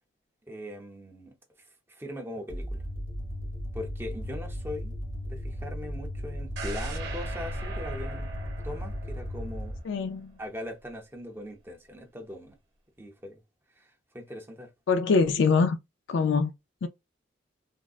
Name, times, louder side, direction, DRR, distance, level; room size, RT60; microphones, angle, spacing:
voice 1, 0.5-1.4 1.9-2.8 3.7-5.0 5.3-8.3 8.6-9.8 10.4-12.6 13.0-13.4 13.8-13.9 14.1-14.7, left 1 dB, 10° right, 0.6 m, -40 dB
sound 1, 2.5-9.8, equal, 85° left, 1.2 m, -36 dB
sound 2, 6.6-10.5 10.9-11.0, right 2 dB, 60° right, 0.8 m, -39 dB
voice 2, 9.8-10.3 14.9-15.8 16.1-16.5 16.8-16.9, left 4 dB, 70° left, 0.4 m, -24 dB
3.5 x 2.1 x 2.3 m
head